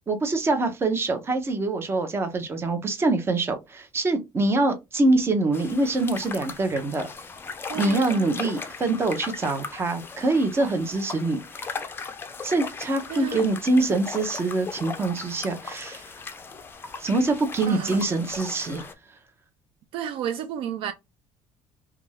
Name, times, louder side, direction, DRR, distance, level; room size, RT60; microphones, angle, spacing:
voice 1, 0.1-7.1 7.7-11.6 12.4-16.1 17.0-18.9, right 2 dB, 25° right, 0.6 m, -24 dB
sound 1, 5.5-18.9, left 5 dB, 20° left, 0.4 m, -38 dB
voice 2, 7.7-8.3 13.1-13.5 17.7-18.0 19.9-20.9, right 9 dB, 65° right, 0.4 m, -32 dB
2.5 x 2.2 x 3.2 m
cardioid pair, 120°, 10 cm